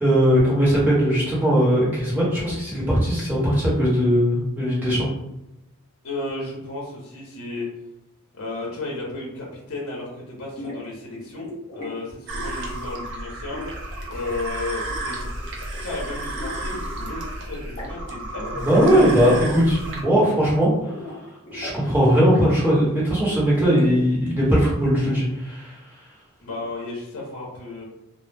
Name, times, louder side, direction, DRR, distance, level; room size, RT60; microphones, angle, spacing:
voice 1, 0.0-5.1 18.6-21.0 21.5-25.8, equal, 10° right, -8 dB, 0.8 m, -19 dB
voice 2, 6.0-7.7 8.3-13.6 14.1-15.3 15.8-19.5 26.4-27.8, left 2 dB, 65° left, -3 dB, 0.7 m, -33 dB
sound 1, 10.6-10.9 11.3-11.9 12.3-12.7 13.5-14.9 15.2-15.5 15.7-17.3 17.6-18.0 18.3-19.2 19.5-20.6 20.9-21.8 22.2-24.0, left 1 dB, 40° left, 0.9 m, -39 dB
sound 2, 12.3-20.0, right 1 dB, 55° right, 0.5 m, -32 dB
2.0 x 2.0 x 3.2 m, 0.91 s
head